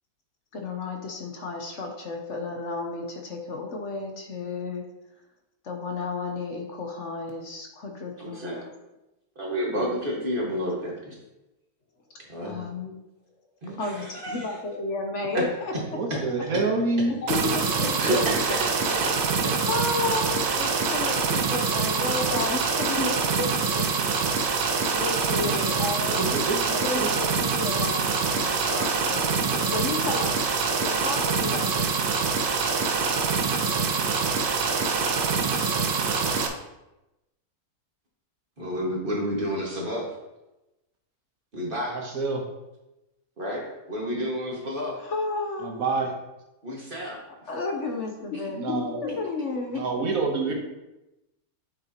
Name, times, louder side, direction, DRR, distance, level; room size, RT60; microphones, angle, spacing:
voice 1, 0.5-4.9 5.6-8.7 9.7-9.9 12.4-12.9 13.8-15.7 17.1-18.3 19.7-23.8 24.9-26.4 26.8-31.7 45.0-45.8 47.5-49.9, left 3 dB, 55° left, 2 dB, 1.1 m, -32 dB
voice 2, 8.2-8.7 9.4-11.2 12.3-12.6 13.6-14.5 15.3-15.4 16.1-16.2 16.5-16.6 18.0-19.2 19.4-19.6 38.6-40.1 41.5-42.0 43.4-45.0 46.6-47.2 48.3-48.4, equal, 35° right, -2 dB, 1.9 m, -30 dB
voice 3, 15.9-17.2 25.4-25.6 26.1-27.3 41.9-42.5 45.6-46.1 48.5-49.0 49.7-50.5, right 3 dB, 65° right, 2 dB, 1.4 m, -28 dB
sound 1, 17.3-36.5, right 5 dB, 80° right, 1.3 m, -25 dB
8.0 x 6.7 x 2.9 m, 0.97 s
omnidirectional pair, 1.6 m